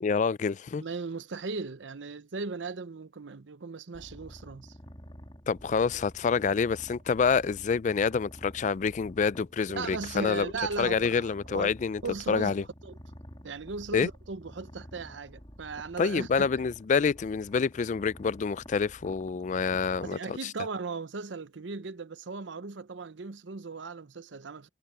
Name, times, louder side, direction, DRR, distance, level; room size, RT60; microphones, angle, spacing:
voice 1, 0.0-0.8 5.5-10.5 10.8-12.0 12.3-12.6 13.9-14.1 16.0-20.5, left 5 dB, 40° left, 0.3 m, -27 dB
voice 2, 0.8-4.8 9.8-11.7 12.0-12.6 12.8-13.0 13.4-16.5 20.0-24.7, right 4 dB, 85° right, 0.8 m, -37 dB
Purr, 3.9-20.1, equal, 25° left, 2.6 m, -49 dB
head